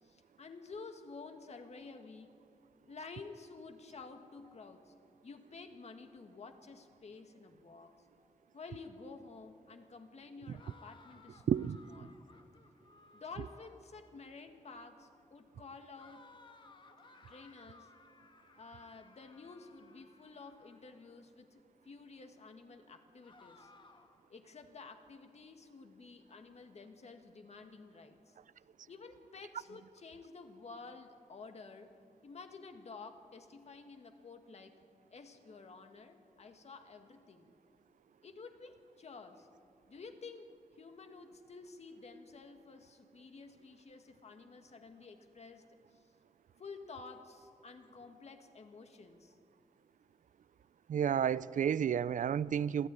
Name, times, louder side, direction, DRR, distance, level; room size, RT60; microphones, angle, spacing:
voice 1, 0.0-2.4 2.9-4.9 5.2-8.0 8.5-12.1 13.1-16.3 17.3-17.9 18.5-23.7 24.3-28.4 28.9-31.9 32.2-34.8 35.1-37.5 38.2-39.5 39.9-46.1 46.6-49.4, left 4 dB, 55° left, 2.0 m, -51 dB
sound 1, 10.5-13.9 16.0-21.2 23.2-24.3, left 3 dB, 40° left, 1.4 m, -61 dB
voice 2, 11.5-12.1 50.9-52.9, right 8 dB, 90° right, 0.5 m, -31 dB
26.0 x 15.5 x 9.8 m
wide cardioid pair, 150°, 13 cm